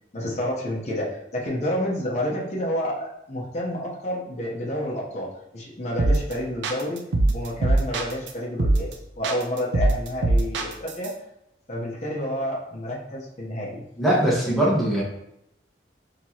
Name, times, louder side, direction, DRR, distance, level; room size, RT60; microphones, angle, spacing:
voice 1, 0.1-5.3 5.5-7.0 7.3-11.1 11.7-13.8, left 1 dB, 40° left, -4 dB, 0.8 m, -29 dB
sound 1, 6.0-6.3 6.6-8.3 8.6-8.9 9.2-11.1, right 2 dB, 85° right, 0.5 m, -22 dB
voice 2, 14.0-15.0, right 1 dB, ahead, -6 dB, 1.1 m, -21 dB
4.5 x 2.9 x 2.8 m, 0.80 s
head